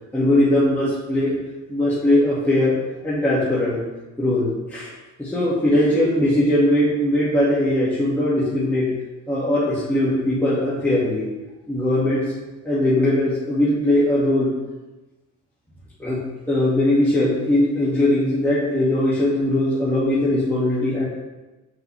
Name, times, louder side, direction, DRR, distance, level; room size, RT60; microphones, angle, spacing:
voice 1, 0.1-1.4 1.7-2.8 3.0-3.8 4.2-4.9 5.2-8.9 9.3-11.3 11.7-12.3 12.6-14.5 16.0-21.0, left 1 dB, 5° left, -10 dB, 2.4 m, -20 dB
7.9 x 6.1 x 3.5 m, 1.1 s
cardioid pair, 90°, 30 cm